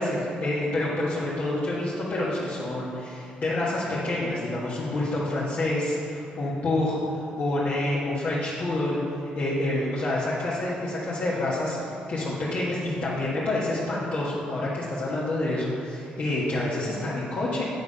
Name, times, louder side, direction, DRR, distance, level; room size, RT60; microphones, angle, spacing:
voice 1, 0.0-7.0 7.4-9.0 9.3-17.6, left 1 dB, 55° left, -8 dB, 1.4 m, -28 dB
9.2 x 3.7 x 5.4 m, 2.6 s
cardioid pair, 85°, 3 cm